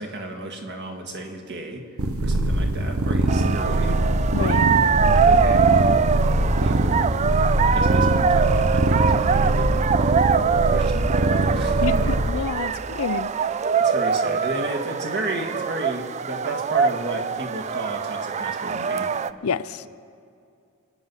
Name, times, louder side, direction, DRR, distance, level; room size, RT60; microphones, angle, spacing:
voice 1, 0.0-1.9 2.2-4.0 5.0-6.0 6.5-7.0 7.6-9.9 10.7-12.2 13.8-19.1, right 1 dB, 50° right, 2 dB, 1.9 m, -33 dB
sound 1, 2.0-12.3, right 1 dB, 70° right, 0.9 m, -22 dB
sound 2, 3.3-19.3, right 6 dB, 30° right, 0.3 m, -23 dB
voice 2, 4.3-4.7 11.8-13.3 19.4-19.8, left 6 dB, 70° left, 15 dB, 0.5 m, -28 dB
27.0 x 9.4 x 5.6 m, 2.4 s
head